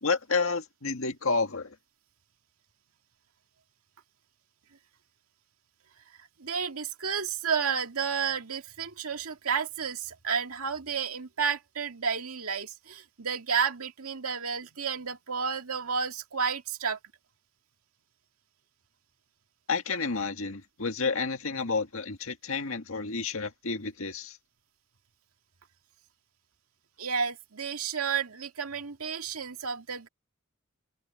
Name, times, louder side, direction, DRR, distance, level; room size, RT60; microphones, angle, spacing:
voice 1, 0.0-1.8 19.7-24.4, left 4 dB, 70° left, 1.9 m, -30 dB
voice 2, 6.4-17.0 27.0-30.1, right 6 dB, 90° right, 2.1 m, -31 dB
head